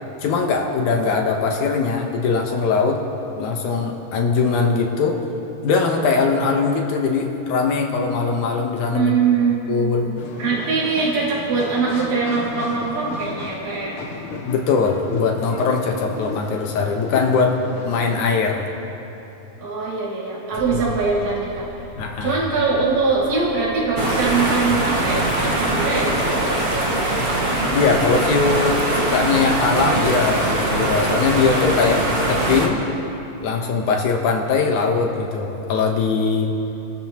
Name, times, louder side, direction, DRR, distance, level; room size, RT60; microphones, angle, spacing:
voice 1, 0.2-3.0 3.4-5.2 5.6-9.1 9.7-10.2 14.4-18.7 22.0-22.4 27.7-32.8 33.4-36.6, left 4 dB, 90° left, 1 dB, 2.7 m, -21 dB
voice 2, 8.9-10.1 10.4-14.0 19.6-21.7 22.2-27.0, right 4 dB, 70° right, -7 dB, 4.1 m, -22 dB
sound 1, 10.2-18.3, left 4 dB, 60° left, 1.7 m, -34 dB
sound 2, 20.6-28.6, equal, 10° right, 2.8 m, -40 dB
sound 3, 24.0-32.7, right 1 dB, 30° right, 1.1 m, -21 dB
30.0 x 13.0 x 3.1 m, 3.0 s
omnidirectional pair, 3.3 m